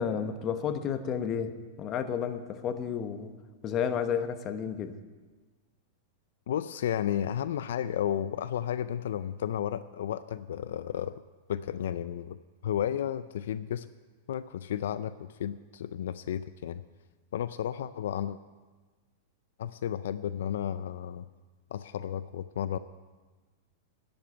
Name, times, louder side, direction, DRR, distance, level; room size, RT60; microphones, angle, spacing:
voice 1, 0.0-3.3 3.6-5.0, left 7 dB, 35° left, 9 dB, 1.0 m, -31 dB
voice 2, 6.5-11.2 11.5-12.4 12.6-13.9 14.3-15.1 15.4-16.8 17.3-18.4 19.6-21.3 21.7-22.8, left 10 dB, 80° left, 13 dB, 0.4 m, -32 dB
10.5 x 7.9 x 9.8 m, 1.3 s
hypercardioid pair, 135°, 0 cm